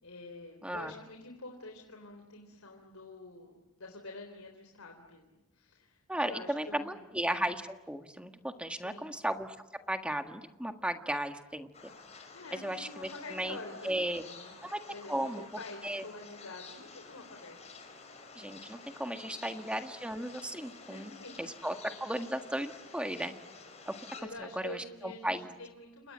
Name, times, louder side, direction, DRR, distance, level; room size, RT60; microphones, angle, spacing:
voice 1, 0.0-5.3 5.5-7.0 8.7-9.1 12.1-14.6 14.9-17.8 19.4-19.5 20.7-21.5 24.2-26.1, left 2 dB, 70° left, 3 dB, 3.7 m, -47 dB
voice 2, 0.6-1.0 6.1-9.6 9.9-11.9 12.5-13.6 13.8-14.2 14.6-14.8 15.1-15.4 15.8-16.0 18.3-21.1 21.4-23.3 23.9-24.0 24.4-25.5, right 1 dB, 5° right, 6 dB, 1.6 m, -35 dB
sound 1, 11.7-24.2, left 4 dB, 30° left, 6.0 m, -51 dB
30.0 x 26.5 x 7.6 m, 1.1 s
head